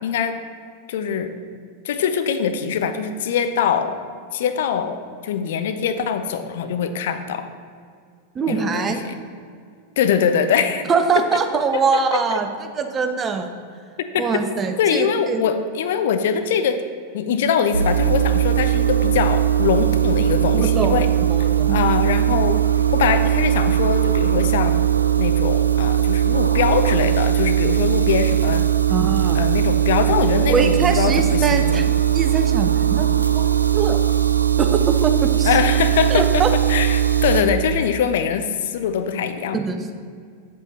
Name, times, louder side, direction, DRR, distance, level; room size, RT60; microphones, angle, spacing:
voice 1, 0.0-0.4 0.9-1.3 1.8-4.0 4.3-7.5 8.5-9.2 10.0-10.8 11.7-11.8 12.1-12.4 14.1-14.2 14.8-16.8 17.1-21.1 21.7-22.6 22.9-24.8 25.2-28.7 29.3-31.9 35.4-36.4 36.7-39.6, left 7 dB, 55° left, 9 dB, 0.6 m, -22 dB
voice 2, 8.3-9.0 10.9-12.5 12.8-13.5 14.2-15.4 20.5-21.0 21.3-21.8 28.9-29.4 30.5-31.8 32.1-33.1 33.3-34.0 34.6-35.5 36.1-36.5 39.5-39.8, right 5 dB, 25° right, 6 dB, 0.8 m, -22 dB
sound 1, 17.7-37.4, right 10 dB, 80° right, 0.4 m, -19 dB
8.4 x 7.8 x 4.2 m, 2.2 s
figure-of-eight pair, 90°, 0 cm